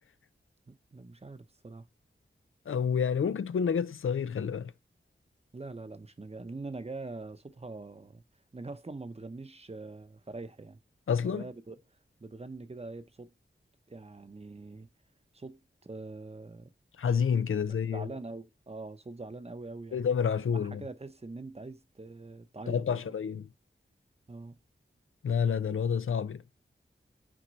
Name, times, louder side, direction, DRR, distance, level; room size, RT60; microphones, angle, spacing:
voice 1, 0.7-1.9 5.5-8.2 8.5-10.8 11.2-11.8 12.2-13.3 13.9-14.9 15.3-16.7 17.8-20.0 20.5-23.1 24.3-24.6, right 3 dB, 30° right, 0.8 m, -43 dB
voice 2, 2.7-4.7 11.1-11.4 17.0-18.1 19.9-20.8 22.7-23.5 25.2-26.4, left 7 dB, 85° left, 0.5 m, -29 dB
6.3 x 4.5 x 4.1 m
wide cardioid pair, 65°, 21 cm